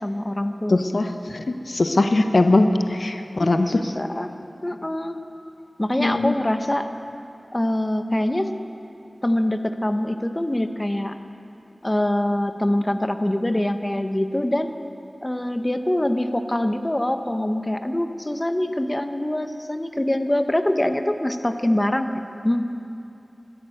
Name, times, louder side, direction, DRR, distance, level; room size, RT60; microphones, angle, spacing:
voice 1, 0.0-0.8 3.4-4.3 4.6-5.2 5.8-6.9 7.5-8.5 9.2-11.1 11.8-14.7 15.2-22.1 22.4-22.7, left 1 dB, 20° left, 8 dB, 0.8 m, -24 dB
voice 2, 0.7-3.8 6.0-6.3, left 2 dB, 65° left, 7 dB, 0.7 m, -21 dB
12.5 x 11.0 x 9.1 m, 2.8 s
wide cardioid pair, 50°, 0 cm